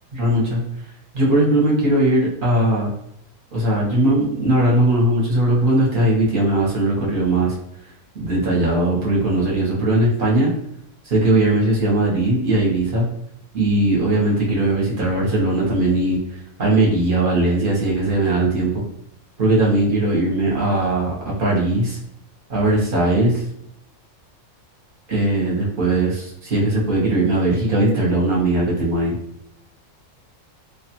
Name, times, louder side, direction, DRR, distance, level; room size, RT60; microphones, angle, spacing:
voice 1, 0.1-0.6 1.1-2.9 3.5-7.5 8.2-10.5 11.1-13.0 13.5-16.2 16.6-18.8 19.4-22.0 22.5-23.4 25.1-29.1, right 1 dB, 45° right, -3 dB, 0.8 m, -19 dB
2.3 x 2.3 x 2.8 m, 0.72 s
omnidirectional pair, 1.5 m